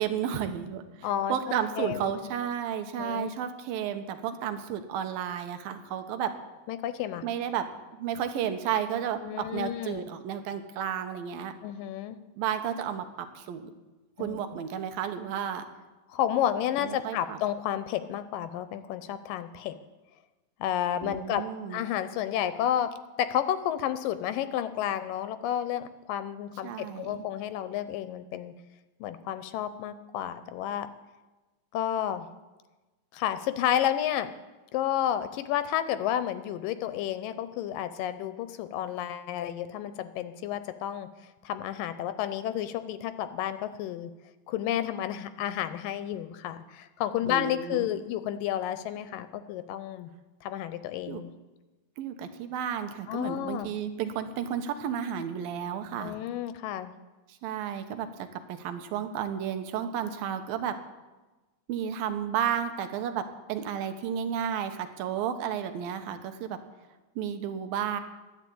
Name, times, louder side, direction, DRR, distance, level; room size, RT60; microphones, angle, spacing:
voice 1, 0.0-6.3 7.2-7.7 8.0-11.5 12.4-13.7 14.2-15.6 16.8-17.4 21.0-21.8 26.6-27.3 47.3-47.9 51.1-51.2 52.0-56.2 57.4-60.8 61.7-66.6 67.2-68.0, right 9 dB, 90° right, 8 dB, 2.8 m, -32 dB
voice 2, 1.0-1.4 1.8-2.1 3.0-3.3 6.7-7.2 9.2-10.0 11.6-12.2 14.2-14.4 16.1-19.7 20.6-21.5 21.7-22.9 23.2-28.5 29.0-30.9 31.7-32.3 33.1-34.3 34.7-41.1 41.4-44.1 44.5-50.1 50.4-51.3 53.1-53.7 56.0-56.9, left 11 dB, 80° left, 11 dB, 2.3 m, -31 dB
13.5 x 10.5 x 8.5 m, 1.2 s
omnidirectional pair, 4.0 m